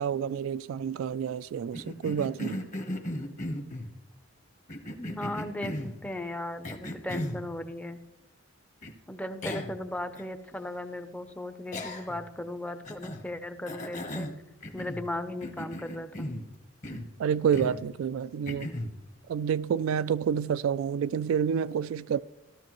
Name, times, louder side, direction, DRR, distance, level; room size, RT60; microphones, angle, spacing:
voice 1, 0.0-2.7 17.2-18.7 19.3-22.2, right 7 dB, 85° right, 0.3 m, -29 dB
Cough, 1.7-3.9 4.7-6.0 6.6-7.4 8.8-8.9 9.4-9.8 10.2-10.3 11.7-12.3 12.8-13.2 13.7-15.1 15.4-16.5 16.8-17.1 17.5-17.8 18.5-18.9, left 1 dB, 40° left, 1.1 m, -36 dB
voice 2, 5.0-8.0 9.1-14.3 14.7-16.3, left 1 dB, 5° left, 0.5 m, -37 dB
14.5 x 12.5 x 3.0 m
head